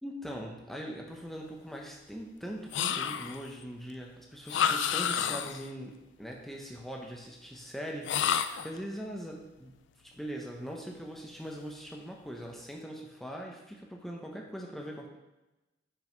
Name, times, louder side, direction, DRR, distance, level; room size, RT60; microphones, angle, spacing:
voice 1, 0.0-8.3 8.6-9.7 10.0-15.1, equal, ahead, -1 dB, 0.7 m, -41 dB
sound 1, 2.7-3.5 4.5-5.7 8.0-8.8, left 8 dB, 75° left, 0.3 m, -29 dB
5.8 x 4.7 x 4.5 m, 1.0 s
head